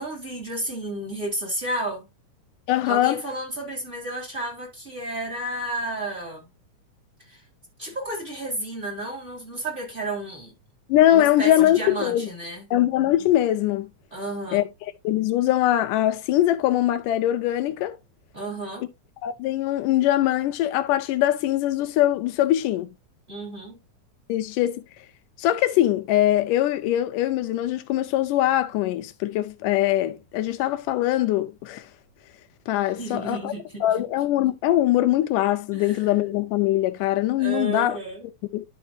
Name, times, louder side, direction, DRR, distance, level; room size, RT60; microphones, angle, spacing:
voice 1, 0.0-2.0 2.9-6.5 7.3-7.4 7.8-10.5 11.1-12.7 14.1-14.7 18.3-18.8 23.3-23.8 33.0-33.8 35.7-36.0 37.4-38.2, right 1 dB, 15° right, 3.9 m, -32 dB
voice 2, 2.7-3.2 10.9-12.3 12.7-13.9 14.5-14.6 15.0-18.0 19.2-22.9 24.3-24.8 25.4-31.9 32.7-33.5 33.8-38.0 38.5-38.6, left 13 dB, 85° left, 2.2 m, -22 dB
11.5 x 5.7 x 2.7 m
omnidirectional pair, 3.7 m